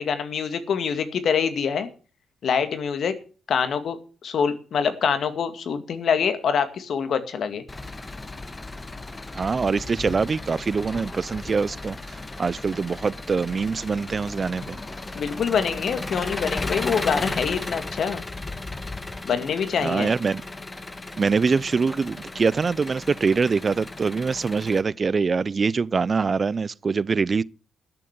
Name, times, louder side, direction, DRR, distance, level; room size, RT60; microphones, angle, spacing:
voice 1, 0.0-1.9 2.4-3.2 3.5-7.6 15.2-18.2 19.2-20.1, left 6 dB, 65° left, 2.1 m, -25 dB
Engine, 7.7-24.8, left 2 dB, 20° left, 1.5 m, -35 dB
voice 2, 9.3-14.8 19.8-20.4 21.2-27.4, right 5 dB, 40° right, 0.5 m, -24 dB
12.5 x 7.6 x 8.0 m
cardioid pair, 75°, 0 cm